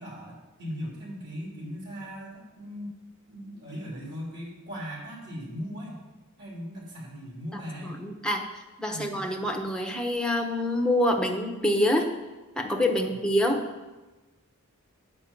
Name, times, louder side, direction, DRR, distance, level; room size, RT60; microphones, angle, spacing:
voice 1, 0.0-2.9 3.3-6.0 6.4-8.0 8.9-9.3 13.0-13.1, equal, 55° right, -4 dB, 3.1 m, -39 dB
voice 2, 7.9-8.5 8.8-12.1 12.6-13.6, left 1 dB, 5° left, 2 dB, 0.9 m, -26 dB
8.6 x 5.6 x 7.2 m, 1.1 s
head